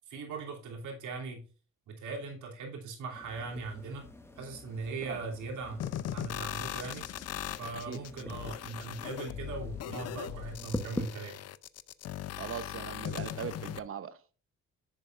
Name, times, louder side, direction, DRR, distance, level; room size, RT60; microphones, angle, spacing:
voice 1, 0.1-1.4 1.9-4.0 4.4-5.8 6.1-7.0 7.6-11.4, right 4 dB, 80° right, 2.9 m, -39 dB
sound 1, 3.1-11.1, left 2 dB, 10° left, 1.1 m, -45 dB
sound 2, 5.8-13.8, left 11 dB, 55° left, 0.5 m, -39 dB
voice 2, 12.4-14.2, right 8 dB, 45° right, 0.9 m, -40 dB
10.0 x 6.8 x 2.4 m
cardioid pair, 90°, 30 cm